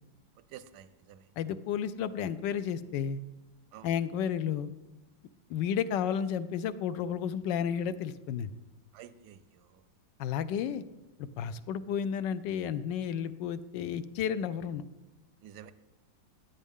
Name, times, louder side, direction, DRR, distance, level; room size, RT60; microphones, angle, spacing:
voice 1, 0.5-1.2 3.7-3.9 8.9-9.4 15.4-15.7, right 10 dB, 70° right, 14 dB, 1.0 m, -49 dB
voice 2, 1.4-3.2 3.8-4.7 5.5-8.5 10.2-10.8 11.4-14.8, left 8 dB, 75° left, 15 dB, 1.2 m, -32 dB
15.0 x 9.8 x 3.6 m, 1.0 s
omnidirectional pair, 2.1 m